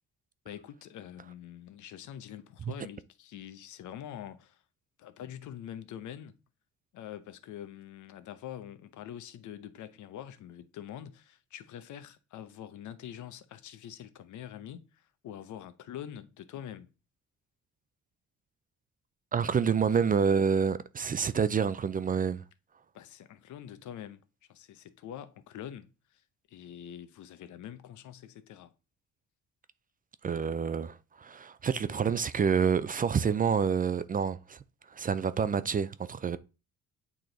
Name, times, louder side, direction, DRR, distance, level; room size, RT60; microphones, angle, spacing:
voice 1, 0.4-4.6 5.0-6.3 6.9-16.9 20.0-20.1 22.9-24.2 24.5-26.2 26.5-28.7, left 10 dB, 75° left, 0.8 m, -45 dB
voice 2, 19.3-22.4 30.2-34.6 34.9-36.4, right 6 dB, 30° right, 0.4 m, -28 dB
8.5 x 3.0 x 3.9 m
cardioid pair, 90°, 30 cm